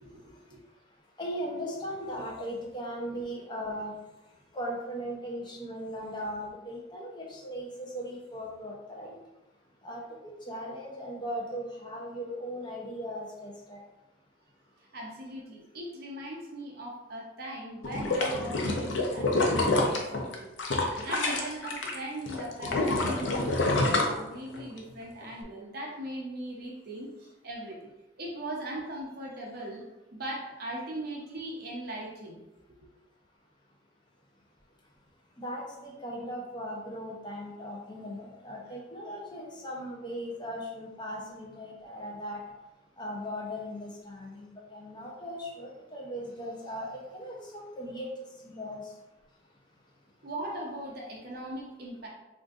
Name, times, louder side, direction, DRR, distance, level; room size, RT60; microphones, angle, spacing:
voice 1, 0.0-0.6 14.8-20.5 21.0-27.9 28.2-29.8 30.1-32.4 50.2-52.1, right 1 dB, 55° right, -2 dB, 0.6 m, -39 dB
voice 2, 1.2-3.9 4.5-9.1 9.8-10.0 10.5-13.8 35.4-42.4 43.0-48.1 48.4-48.8, equal, 25° left, -2 dB, 0.6 m, -38 dB
sound 1, 17.8-22.0 22.3-24.8 25.2-25.3, left 2 dB, 75° left, 0.5 m, -27 dB
3.6 x 2.5 x 2.4 m, 0.99 s
head